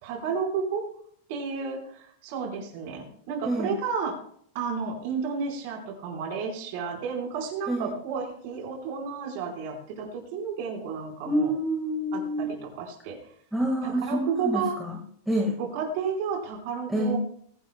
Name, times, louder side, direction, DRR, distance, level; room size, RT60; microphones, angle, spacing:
voice 1, 0.0-0.8 1.3-4.1 4.5-11.5 12.1-12.5 12.7-13.2 13.8-14.8 15.6-17.2, right 6 dB, 45° right, 1 dB, 4.8 m, -32 dB
voice 2, 3.4-3.7 7.7-7.9 11.2-12.6 13.5-15.0 15.3-15.6 16.9-17.2, right 1 dB, ahead, -2 dB, 1.9 m, -27 dB
22.0 x 11.5 x 2.3 m, 0.62 s
supercardioid pair, 175°, 0 cm